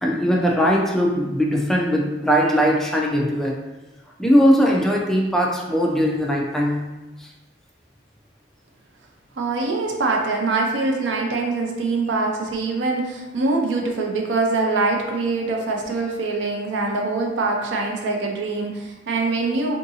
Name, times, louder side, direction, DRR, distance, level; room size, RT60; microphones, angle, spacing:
voice 1, 0.0-3.6 4.2-6.8, equal, ahead, -2 dB, 0.3 m, -19 dB
voice 2, 9.4-19.8, right 3 dB, 85° right, 1 dB, 0.5 m, -23 dB
3.6 x 2.6 x 2.7 m, 1.1 s
head